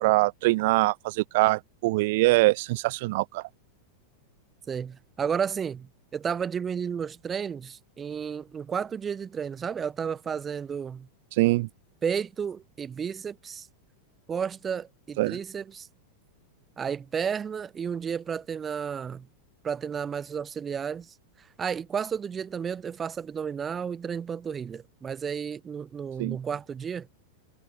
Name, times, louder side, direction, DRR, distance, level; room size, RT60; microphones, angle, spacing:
voice 1, 0.0-3.4 11.3-11.7 15.2-15.4 26.2-26.4, right 21 dB, 50° right, 1.3 m, -23 dB
voice 2, 4.7-11.1 12.0-13.7 14.3-15.9 16.8-19.3 19.6-27.1, right 7 dB, 20° right, 5.5 m, -32 dB
figure-of-eight pair, 90°, 0 cm